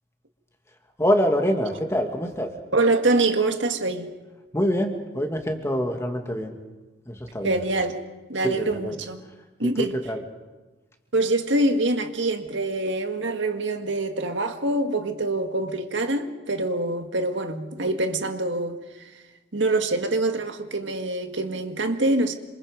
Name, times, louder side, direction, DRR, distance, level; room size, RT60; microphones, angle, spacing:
voice 1, 1.0-2.5 4.5-6.6 7.1-7.6 8.4-9.0 9.6-10.2, equal, 15° left, 2.2 m, -25 dB
voice 2, 2.7-4.1 7.4-8.0 8.3-9.2 9.6-10.0 11.1-19.1 19.5-22.3, right 2 dB, 80° right, 1.8 m, -25 dB
27.5 x 27.0 x 5.2 m
head